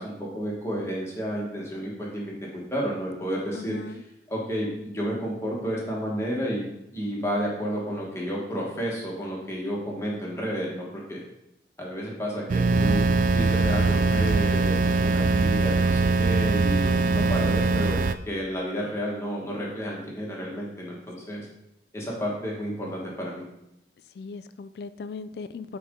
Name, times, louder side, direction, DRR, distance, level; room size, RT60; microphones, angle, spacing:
voice 1, 0.0-4.0 4.3-6.6 6.9-11.2 11.8-13.0 13.3-21.5 21.9-23.4, equal, 15° left, -3 dB, 1.4 m, -31 dB
voice 2, 3.5-4.0 21.2-21.4 24.2-25.8, left 4 dB, 65° left, 12 dB, 0.3 m, -39 dB
sound 1, 12.5-18.2, right 3 dB, 45° right, 0.3 m, -22 dB
10.0 x 4.3 x 3.7 m, 0.83 s
head